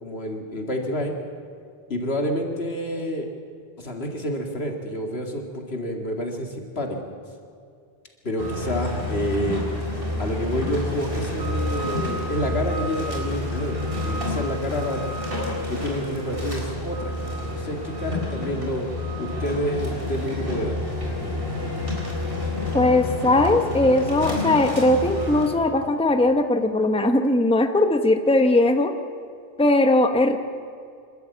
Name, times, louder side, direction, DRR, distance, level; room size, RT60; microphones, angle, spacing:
voice 1, 0.0-1.1 1.9-3.3 3.8-7.0 8.2-9.6 10.2-13.8 14.0-15.0 15.7-17.1 17.5-18.9 19.2-20.8, equal, 80° left, 2 dB, 2.6 m, -28 dB
sound 1, 8.4-25.5, left 1 dB, 60° right, 4.5 m, -29 dB
voice 2, 22.7-28.9 29.6-30.4, left 2 dB, 5° left, 7 dB, 0.9 m, -19 dB
26.5 x 12.5 x 8.4 m, 2.3 s
omnidirectional pair, 1.0 m